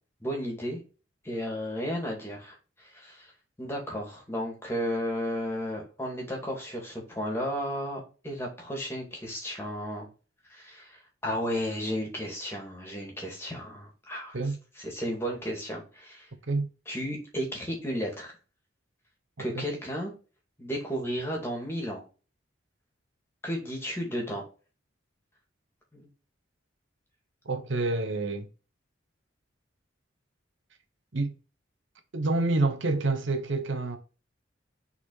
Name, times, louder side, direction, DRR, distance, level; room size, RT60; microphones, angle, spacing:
voice 1, 0.2-0.8 1.2-3.3 3.6-10.1 10.5-14.4 14.8-16.3 16.9-18.3 19.4-20.1 20.6-22.0 23.4-24.4 25.9-26.1, equal, 15° left, 2.3 m, -33 dB
voice 2, 27.4-28.5 31.1-31.3 32.1-34.0, right 2 dB, 75° right, 1.0 m, -27 dB
5.8 x 4.1 x 5.5 m
head